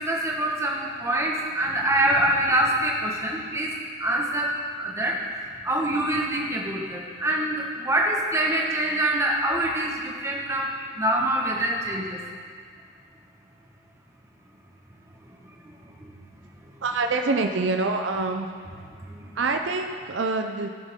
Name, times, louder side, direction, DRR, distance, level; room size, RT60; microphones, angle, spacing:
voice 1, 0.0-3.7 4.0-5.2 5.6-12.2 15.2-16.2 19.0-19.4, right 1 dB, 15° right, -2 dB, 1.3 m, -25 dB
voice 2, 16.8-18.5 19.3-20.7, right 3 dB, 70° right, 5 dB, 0.6 m, -25 dB
16.5 x 7.3 x 3.7 m, 2.1 s
head